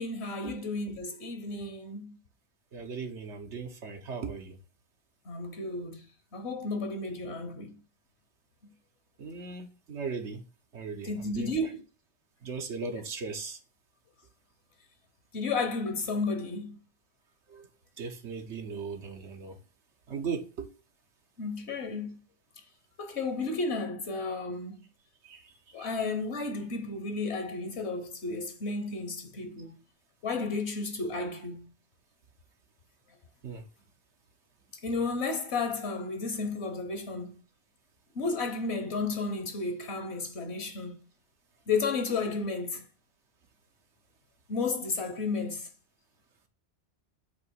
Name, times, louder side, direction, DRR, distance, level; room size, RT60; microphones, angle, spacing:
voice 1, 0.0-2.2 5.3-6.0 6.3-7.8 11.0-11.8 15.3-16.8 21.4-22.2 23.0-24.8 25.7-29.8 30.2-31.7 34.8-37.3 38.1-40.9 41.7-42.8 44.5-45.7, left 3 dB, 70° left, 1.4 m, -32 dB
voice 2, 2.7-4.6 9.2-10.4 10.7-11.5 12.4-13.6 17.5-17.7 18.0-19.6 20.1-20.7 25.2-25.4 25.8-25.9 33.4-33.6, right 5 dB, 85° right, 1.3 m, -38 dB
8.1 x 2.9 x 6.2 m
omnidirectional pair, 1.1 m